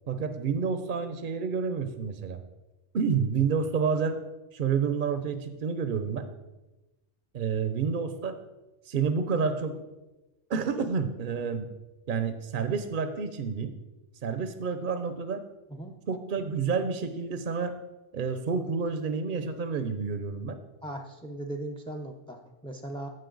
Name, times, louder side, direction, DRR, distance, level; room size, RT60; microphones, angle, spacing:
voice 1, 0.1-2.4 2.9-4.2 4.5-6.3 7.3-8.4 8.9-9.8 10.5-11.7 12.1-13.7 14.2-15.4 16.1-17.7 18.1-20.6, right 5 dB, 50° right, 9 dB, 0.7 m, -29 dB
voice 2, 20.8-23.1, right 1 dB, 5° left, 4 dB, 0.4 m, -38 dB
15.5 x 5.3 x 3.9 m, 1.1 s
omnidirectional pair, 1.3 m